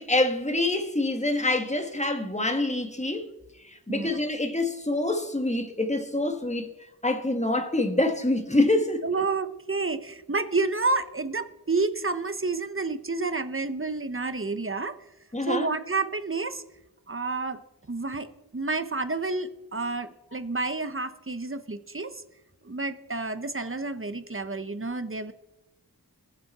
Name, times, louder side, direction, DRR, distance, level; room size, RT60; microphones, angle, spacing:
voice 1, 0.0-3.3 3.7-6.7 7.0-9.0 15.3-15.6, left 2 dB, 15° left, 1.7 m, -26 dB
voice 2, 9.0-15.0 15.5-16.6 17.1-17.6 17.9-18.3 18.5-22.2 22.6-25.3, right 3 dB, 35° right, 1.0 m, -29 dB
20.0 x 7.7 x 4.2 m
wide cardioid pair, 45°, 39 cm